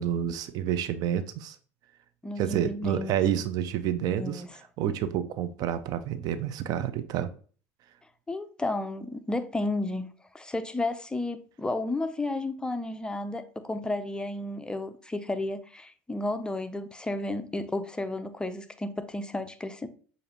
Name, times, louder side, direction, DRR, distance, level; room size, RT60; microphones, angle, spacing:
voice 1, 0.0-1.6 2.4-4.4 4.8-7.3, right 10 dB, 55° right, 0.4 m, -29 dB
voice 2, 2.2-3.1 4.1-4.5 8.3-19.9, left 2 dB, 10° left, 0.5 m, -32 dB
6.6 x 2.6 x 2.8 m
hypercardioid pair, 80°, 8 cm